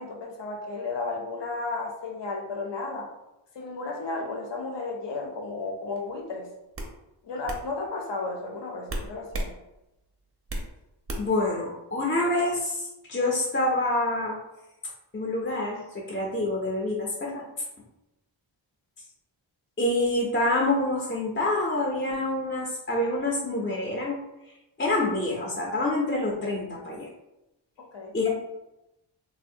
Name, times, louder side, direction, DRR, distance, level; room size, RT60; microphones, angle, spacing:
voice 1, 0.0-3.1 3.5-6.5 7.2-9.6 27.8-28.2, left 3 dB, 65° left, 2 dB, 0.6 m, -33 dB
sound 1, 6.0-6.2 6.7-6.9 7.5-7.6 8.9-9.5 9.9-10.7 11.1-11.4, right 1 dB, 30° right, 0.4 m, -33 dB
voice 2, 11.2-14.4 15.1-17.4 19.8-24.2 24.8-27.1 28.1-28.3, left 2 dB, 25° left, -2 dB, 0.4 m, -27 dB
3.2 x 2.1 x 2.6 m, 0.93 s
wide cardioid pair, 110°, 46 cm